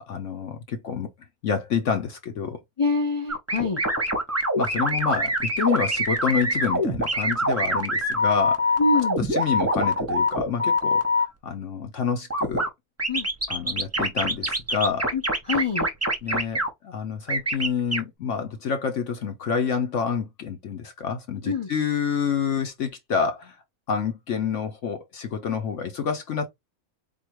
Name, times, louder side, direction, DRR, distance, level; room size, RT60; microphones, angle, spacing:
voice 1, 0.1-1.1 1.4-2.6 4.6-8.7 9.2-12.6 13.5-15.1 16.2-23.6 23.9-26.5, left 7 dB, 60° left, 1.0 m, -28 dB
voice 2, 2.8-3.8 8.8-9.2 13.1-13.3 15.1-15.2 15.5-15.9 21.4-21.7, left 3 dB, 40° left, 0.4 m, -25 dB
sound 1, 3.3-11.2 12.3-12.7 13.0-16.7 17.3-18.0, equal, 15° right, 0.7 m, -24 dB
3.9 x 2.8 x 4.5 m
omnidirectional pair, 1.6 m